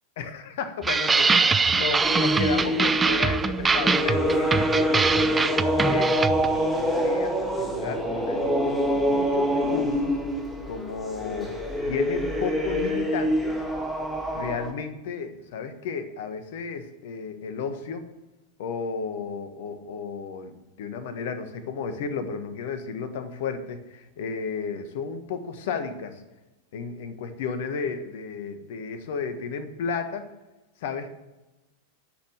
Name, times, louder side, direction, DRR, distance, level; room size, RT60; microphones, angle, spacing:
voice 1, 0.2-10.1 10.7-11.5 11.8-13.6 14.3-18.0 18.6-20.5 20.8-26.2 26.7-30.3 30.8-31.1, left 5 dB, 55° left, 9 dB, 1.4 m, -33 dB
sound 1, 0.8-6.5, right 4 dB, 15° right, 0.5 m, -23 dB
sound 2, 2.0-14.7, equal, 5° left, 2.1 m, -26 dB
10.0 x 7.0 x 9.0 m, 1.0 s
figure-of-eight pair, 90°, 0 cm